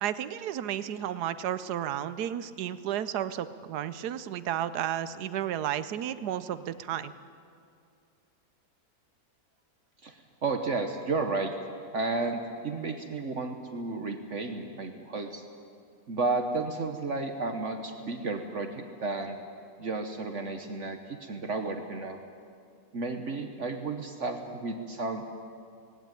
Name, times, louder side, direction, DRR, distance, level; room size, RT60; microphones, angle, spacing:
voice 1, 0.0-7.1, right 10 dB, 90° right, 13 dB, 1.3 m, -32 dB
voice 2, 10.0-11.5 11.9-15.4 16.1-19.4 19.8-22.2 22.9-25.3, right 3 dB, 50° right, 6 dB, 1.4 m, -32 dB
19.0 x 17.5 x 9.1 m, 2.3 s
omnidirectional pair, 1.7 m